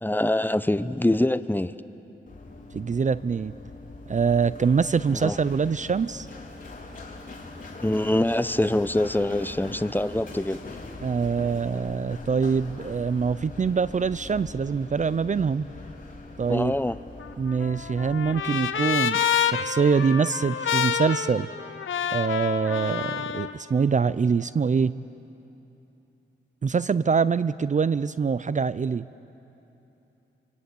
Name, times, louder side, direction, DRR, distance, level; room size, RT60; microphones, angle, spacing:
voice 1, 0.0-1.7 5.2-5.4 7.8-10.6 16.5-17.0, left 1 dB, 10° left, 14 dB, 0.8 m, -24 dB
Run, 2.3-18.4, left 2 dB, 45° left, 4.1 m, -42 dB
voice 2, 2.7-3.5 4.1-6.3 11.0-15.6 16.4-16.7 17.4-21.5 22.1-24.9 26.6-29.1, right 5 dB, 40° right, 16 dB, 0.5 m, -24 dB
Trumpet, 17.2-23.5, left 8 dB, 80° left, 1.0 m, -28 dB
25.5 x 25.5 x 8.4 m, 2.9 s
cardioid pair, 60°, 20 cm